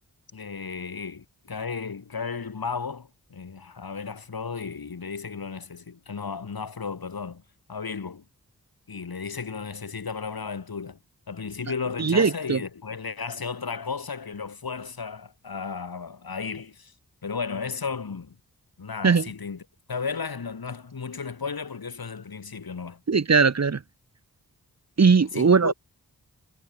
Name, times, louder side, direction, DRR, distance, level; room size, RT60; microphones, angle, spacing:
voice 1, 0.3-7.4 7.7-8.2 8.9-11.0 11.3-16.9 17.2-18.4 18.8-19.6 19.9-23.0 25.3-25.7, left 5 dB, 80° left, 5.6 m, -34 dB
voice 2, 12.0-12.6 19.0-19.3 23.1-23.8 25.0-25.7, right 5 dB, 45° right, 1.1 m, -19 dB
wide cardioid pair, 75°, 36 cm